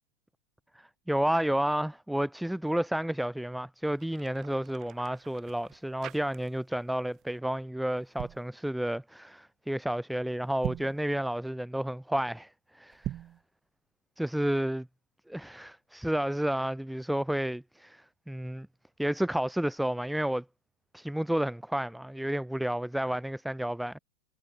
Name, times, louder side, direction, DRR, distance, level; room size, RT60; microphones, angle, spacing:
voice 1, 0.7-13.1 14.2-14.8 15.3-18.7 19.0-20.4 20.9-24.0, right 1 dB, ahead, 0.8 m, -31 dB
sound 1, 3.9-6.8 7.1-7.4 8.0-8.5 10.5-11.0 12.9-13.4, right 12 dB, 30° right, 6.3 m, -41 dB
figure-of-eight pair, 90°, 0 cm